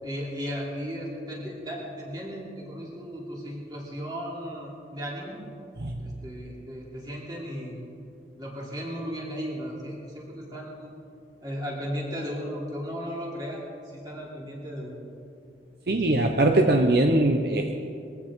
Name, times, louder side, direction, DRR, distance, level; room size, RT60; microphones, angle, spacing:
voice 1, 0.0-5.4 6.0-7.8 8.4-10.9 11.4-15.0 16.0-16.3, equal, 25° right, -4 dB, 3.3 m, -36 dB
voice 2, 15.9-17.7, right 2 dB, 60° right, 4 dB, 0.8 m, -21 dB
22.0 x 15.5 x 3.7 m, 2.5 s
head